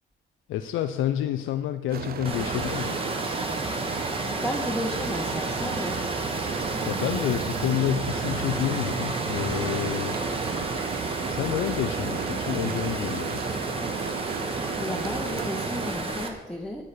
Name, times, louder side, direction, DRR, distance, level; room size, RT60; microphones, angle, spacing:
voice 1, 0.5-3.0 6.9-10.8 11.3-13.4, left 12 dB, 80° left, 8 dB, 0.4 m, -29 dB
sound 1, 1.9-15.9, right 7 dB, 50° right, 0.5 m, -34 dB
Water, 2.2-16.3, right 2 dB, 25° right, 1.2 m, -31 dB
voice 2, 4.4-6.1 14.8-16.9, equal, 5° left, 0 dB, 0.8 m, -33 dB
9.7 x 6.4 x 4.3 m, 1.2 s
cardioid pair, 90°, 20 cm